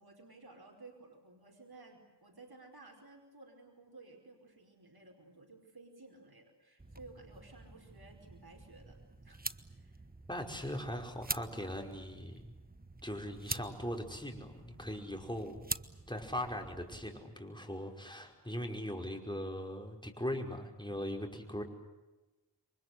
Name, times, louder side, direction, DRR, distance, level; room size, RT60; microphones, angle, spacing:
voice 1, 0.0-9.4 9.7-10.0, right 3 dB, 60° right, 2 dB, 5.0 m, -56 dB
sound 1, 6.8-17.2, right 2 dB, 20° right, 1.2 m, -46 dB
voice 2, 10.3-12.5 13.0-15.7 16.1-21.6, equal, 10° left, 3 dB, 5.3 m, -40 dB
28.5 x 24.0 x 8.0 m, 1.1 s
wide cardioid pair, 45°, 41 cm